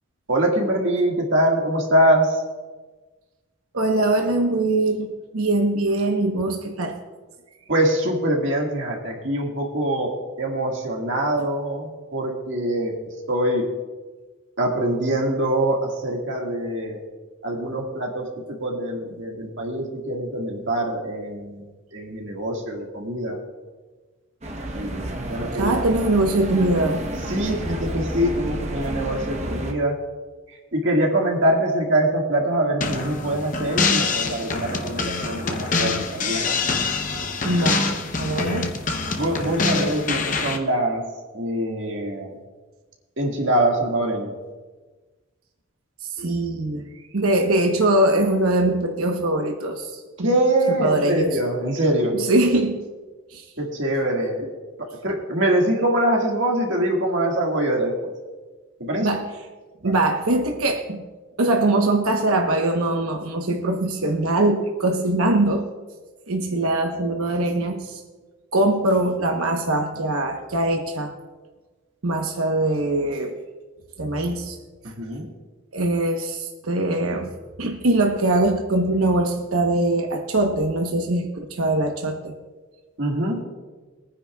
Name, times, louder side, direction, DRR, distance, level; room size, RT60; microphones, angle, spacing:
voice 1, 0.3-2.4 7.7-13.0 13.3-13.7 14.6-17.0 17.4-21.6 21.9-23.4 24.8-25.9 27.3-30.0 30.7-36.5 39.2-41.0 41.3-42.3 43.2-44.4 50.2-52.3 53.6-54.5 54.9-58.1 58.8-59.1 59.8-59.9 74.8-75.3 83.0-83.4, right 1 dB, 60° right, 0 dB, 1.9 m, -24 dB
voice 2, 3.7-7.0 25.6-27.0 37.4-38.7 46.2-46.8 47.1-50.3 50.8-51.3 52.2-52.8 53.3-53.4 59.0-59.2 59.8-61.0 61.4-65.6 66.3-68.0 68.5-71.1 72.0-73.4 74.0-74.6 75.7-77.3 77.6-82.3, right 2 dB, 85° right, 3 dB, 1.1 m, -22 dB
sound 1, 24.4-29.7, right 1 dB, 30° right, 1.0 m, -30 dB
sound 2, 32.8-40.6, left 4 dB, 35° left, 0.8 m, -25 dB
22.0 x 9.8 x 2.4 m, 1.3 s
head